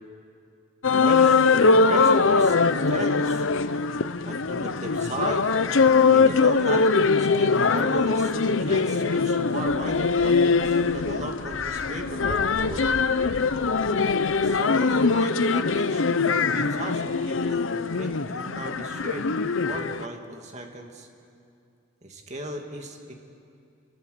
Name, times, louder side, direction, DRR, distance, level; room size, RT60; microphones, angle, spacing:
sound 1, 0.8-20.0, left 4 dB, 70° left, 0.7 m, -22 dB
voice 1, 1.0-3.5 4.2-5.5 6.1-12.9 14.4-19.3 19.6-21.1 22.0-23.1, right 2 dB, 35° right, 3 dB, 2.5 m, -36 dB
29.0 x 22.5 x 6.8 m, 2.5 s
head